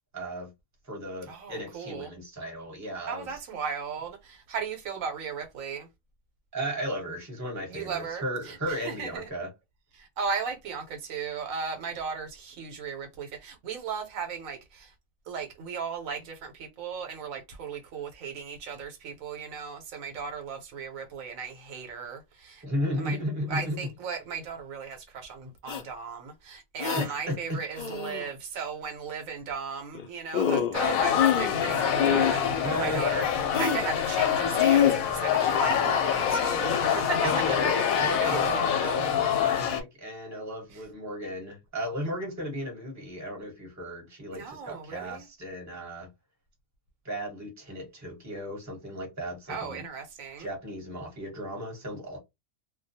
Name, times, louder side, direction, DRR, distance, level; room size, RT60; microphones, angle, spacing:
voice 1, 0.1-0.5 0.8-3.4 6.5-9.5 22.6-23.9 26.9-27.6 32.6-33.2 37.2-46.1 47.0-49.8 50.4-52.2, equal, 15° right, 0.9 m, -35 dB
voice 2, 1.3-2.1 3.1-5.9 7.7-9.3 10.0-14.9 15.3-22.6 23.0-23.2 23.5-33.2 33.5-37.6 38.2-38.4 44.3-45.3 49.5-50.5, right 6 dB, 80° right, 1.0 m, -36 dB
sound 1, 25.7-25.8 26.8-27.1 27.8-28.3 29.9-30.1 30.3-30.8 31.1-31.6 31.9-32.4 33.5-33.9 34.6-35.0, left 8 dB, 70° left, 0.4 m, -25 dB
sound 2, 30.7-39.8, left 8 dB, 90° left, 1.0 m, -25 dB
2.3 x 2.2 x 2.6 m
omnidirectional pair, 1.4 m